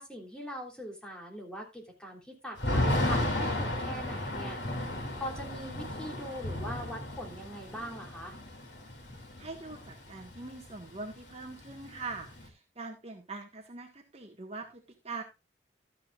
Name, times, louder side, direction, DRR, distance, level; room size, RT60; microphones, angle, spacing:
voice 1, 0.0-4.6 5.2-8.3, equal, 5° left, 0 dB, 3.1 m, -41 dB
Thunder / Rain, 2.6-10.5 10.7-10.8 11.1-12.5, left 1 dB, 80° left, 3.3 m, -33 dB
voice 2, 9.4-15.2, right 3 dB, 35° right, 3 dB, 1.6 m, -43 dB
13.0 x 9.5 x 2.4 m, 0.25 s
head